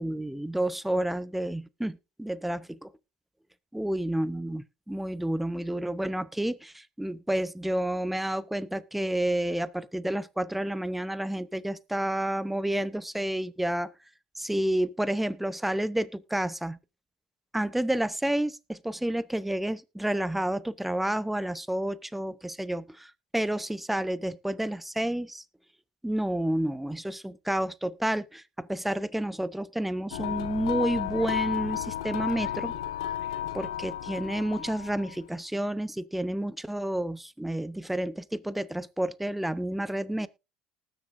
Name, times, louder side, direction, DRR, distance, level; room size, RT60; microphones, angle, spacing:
voice 1, 0.0-2.9 3.7-13.9 14.4-16.8 17.5-25.4 26.0-32.7 33.5-40.3, right 1 dB, 5° right, 0.8 m, -30 dB
sound 1, 30.1-35.2, left 11 dB, 80° left, 1.0 m, -33 dB
19.5 x 7.3 x 2.6 m
hypercardioid pair, 70°, 3 cm